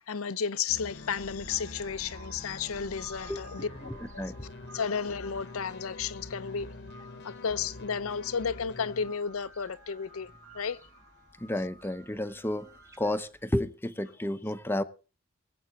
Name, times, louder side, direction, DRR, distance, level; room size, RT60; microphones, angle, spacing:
voice 1, 0.0-3.7 4.1-4.2 4.7-6.7 7.2-10.8, left 6 dB, 80° left, 0.6 m, -33 dB
sound 1, 0.7-9.2, left 3 dB, 55° left, 1.0 m, -46 dB
sound 2, 0.9-13.6, right 1 dB, 15° right, 1.0 m, -57 dB
sound 3, 0.9-1.0 1.4-13.5, right 2 dB, 85° right, 5.8 m, -54 dB
voice 2, 3.9-4.4 11.4-12.7 13.0-14.8, left 1 dB, 10° left, 0.7 m, -31 dB
22.0 x 7.9 x 4.2 m
head